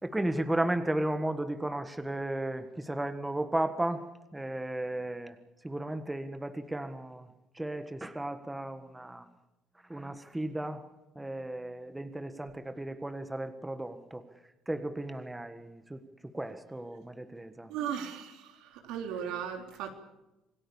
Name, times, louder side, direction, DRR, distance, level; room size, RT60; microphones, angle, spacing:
voice 1, 0.0-4.0 4.3-5.3 5.6-7.2 7.6-9.2 9.9-10.8 11.1-14.2 14.7-16.0 16.3-17.7, right 1 dB, 10° right, 9 dB, 1.5 m, -34 dB
voice 2, 17.7-18.4 18.9-19.9, right 8 dB, 85° right, 4 dB, 3.6 m, -35 dB
27.0 x 18.0 x 7.1 m, 0.98 s
cardioid pair, 110°, 0 cm